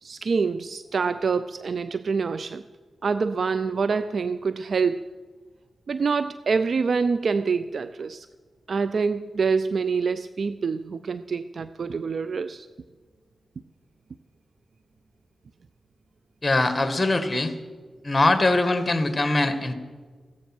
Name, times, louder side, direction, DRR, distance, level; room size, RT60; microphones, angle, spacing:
voice 1, 0.0-2.6 3.0-5.1 5.9-8.3 8.7-12.7, right 5 dB, 65° right, 13 dB, 0.4 m, -26 dB
voice 2, 16.4-17.5 18.0-19.7, left 2 dB, 25° left, 8 dB, 1.9 m, -22 dB
15.5 x 14.0 x 6.1 m, 1.5 s
cardioid pair, 45°, 0 cm